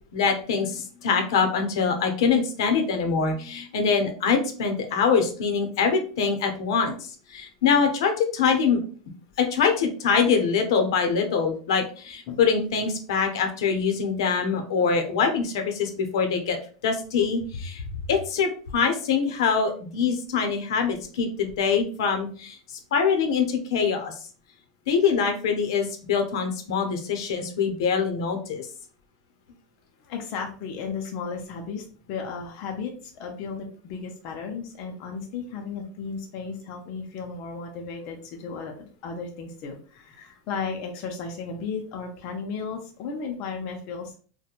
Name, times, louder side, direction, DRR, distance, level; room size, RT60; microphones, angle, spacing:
voice 1, 0.1-7.0 7.3-8.8 9.4-16.6 16.8-17.8 18.1-22.6 22.9-24.1 24.9-28.7, left 6 dB, 80° left, 5 dB, 0.7 m, -24 dB
voice 2, 30.0-44.2, left 5 dB, 40° left, 2 dB, 0.4 m, -34 dB
2.9 x 2.1 x 2.4 m, 0.41 s
supercardioid pair, 165°, 2 cm